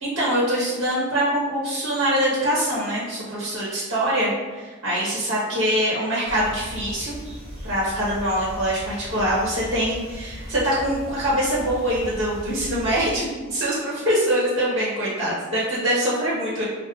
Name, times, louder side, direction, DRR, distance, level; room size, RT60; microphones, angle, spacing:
voice 1, 0.0-7.2 7.6-16.6, equal, 80° right, -7 dB, 1.1 m, -24 dB
sound 1, 6.3-13.1, equal, 30° right, 1.1 m, -38 dB
6.1 x 2.2 x 2.4 m, 1.4 s
head